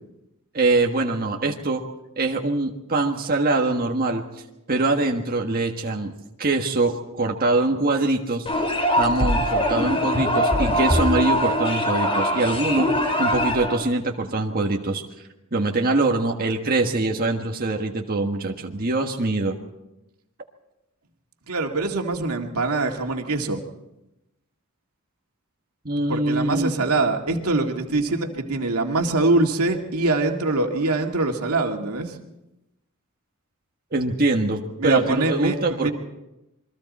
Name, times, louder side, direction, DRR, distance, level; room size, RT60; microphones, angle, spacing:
voice 1, 0.5-1.8 2.2-4.2 4.7-6.1 6.4-8.4 8.9-12.9 13.2-15.0 15.5-19.6 25.8-26.7 33.9-35.9, right 2 dB, 40° right, 1 dB, 1.5 m, -23 dB
sound 1, 8.5-13.8, equal, 25° left, 4.3 m, -22 dB
voice 2, 21.5-23.6 26.1-32.2 34.8-35.9, right 2 dB, 85° right, 2 dB, 2.2 m, -23 dB
28.0 x 22.5 x 4.3 m, 0.93 s
head